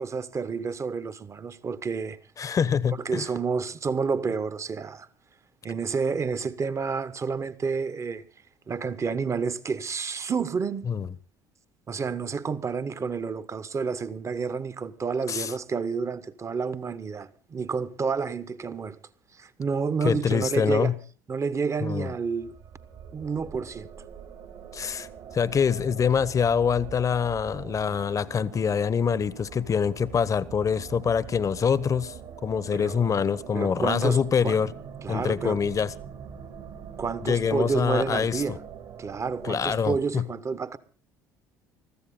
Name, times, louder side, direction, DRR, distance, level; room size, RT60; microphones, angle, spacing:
voice 1, 0.0-2.2 3.0-5.1 5.6-8.2 8.7-10.9 11.9-19.0 19.3-20.9 21.3-22.5 23.1-23.9 32.8-33.0 33.5-34.6 35.0-35.6 37.0-38.6 39.0-40.8, right 5 dB, 30° right, 1.3 m, -29 dB
voice 2, 2.4-3.2 10.9-11.1 15.3-15.5 20.0-21.0 21.8-22.1 24.7-25.1 25.3-32.1 32.4-34.7 35.1-35.9 37.2-38.4 39.4-40.3, left 7 dB, 35° left, 1.0 m, -25 dB
sound 1, 22.2-40.0, right 7 dB, 60° right, 3.2 m, -43 dB
21.5 x 14.5 x 3.8 m
hypercardioid pair, 65°, 9 cm